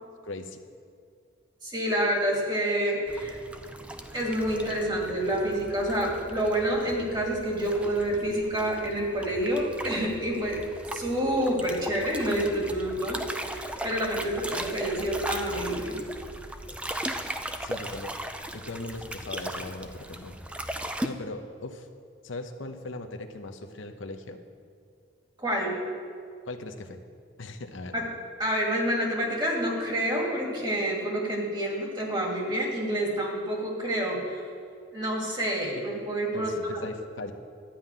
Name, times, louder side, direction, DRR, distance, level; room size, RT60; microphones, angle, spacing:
voice 1, 0.2-0.6 17.6-18.2 18.5-20.4 21.0-21.9 22.2-24.4 26.5-27.0 27.4-27.9 36.3-37.3, left 2 dB, 90° left, 6 dB, 0.9 m, -39 dB
voice 2, 1.6-3.4 4.1-10.6 10.9-16.0 25.4-25.8 27.9-28.1 28.4-34.4 34.9-36.5, right 1 dB, 25° right, -1 dB, 2.3 m, -28 dB
sound 1, 3.1-21.1, right 1 dB, 5° right, 0.4 m, -38 dB
12.0 x 5.7 x 9.1 m, 2.3 s
head